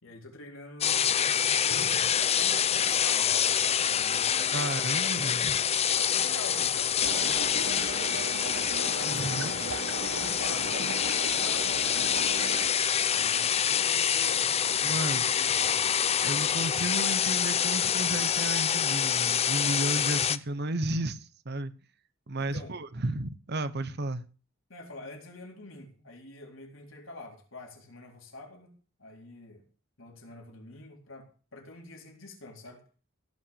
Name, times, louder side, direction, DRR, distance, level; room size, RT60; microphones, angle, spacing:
voice 1, 0.0-3.4 3.8-4.8 6.0-7.9 8.7-9.7 10.0-11.0 11.2-12.4 13.1-15.9 22.4-22.8 24.7-28.7 29.0-29.6 30.0-32.8, left 2 dB, 70° left, 4.0 m, -46 dB
sound 1, 0.8-20.4, left 8 dB, 30° left, 0.6 m, -26 dB
voice 2, 4.5-5.6 9.1-9.5 14.8-15.3 16.2-21.7 22.3-24.2, right 2 dB, 55° right, 1.0 m, -33 dB
sound 2, 7.0-12.7, right 4 dB, 80° right, 1.0 m, -38 dB
16.0 x 5.9 x 8.8 m
head